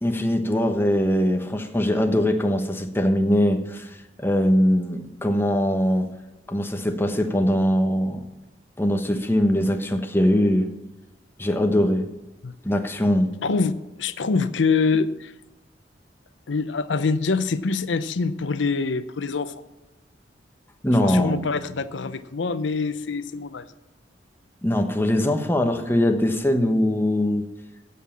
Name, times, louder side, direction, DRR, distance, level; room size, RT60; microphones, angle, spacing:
voice 1, 0.0-6.1 6.5-8.2 8.8-10.7 11.4-12.1 12.6-13.3 20.8-21.4 24.6-27.5, left 1 dB, 15° left, 5 dB, 1.1 m, -21 dB
voice 2, 13.4-15.3 16.5-19.5 21.0-23.6, left 4 dB, 85° left, 13 dB, 0.6 m, -25 dB
15.5 x 5.6 x 7.3 m, 1.0 s
head